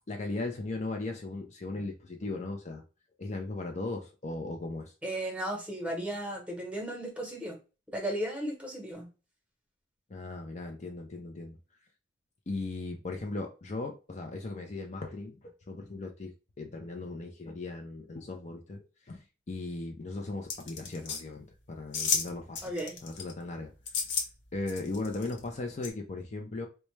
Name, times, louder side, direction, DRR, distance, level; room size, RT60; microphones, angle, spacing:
voice 1, 0.1-2.8 3.2-4.9 10.1-11.6 12.5-23.7 24.5-26.7, left 2 dB, 40° left, 0.5 m, -38 dB
voice 2, 5.0-7.6 7.9-9.1 22.6-23.0, right 1 dB, 5° right, 1.0 m, -35 dB
sound 1, 20.5-21.2 21.9-22.3 22.5-23.3 23.9-24.3 24.7-25.4 25.8-25.9, left 5 dB, 70° left, 0.8 m, -31 dB
4.1 x 2.2 x 3.2 m
head